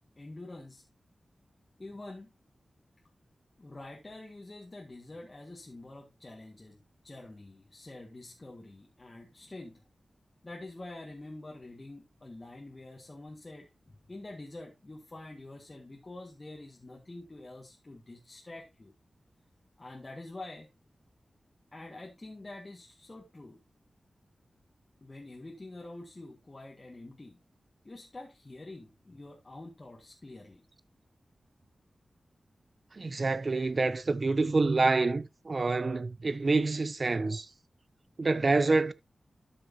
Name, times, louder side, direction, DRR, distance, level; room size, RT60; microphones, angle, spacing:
voice 1, 0.2-0.8 1.8-2.3 3.6-6.8 7.0-9.8 10.4-18.9 19.8-20.7 21.7-23.6 25.0-27.4 27.8-30.6, left 2 dB, 30° left, 1.9 m, -46 dB
voice 2, 32.9-37.5 38.2-38.9, right 3 dB, 45° right, 0.6 m, -27 dB
12.5 x 6.3 x 2.8 m
wide cardioid pair, 105°, 0 cm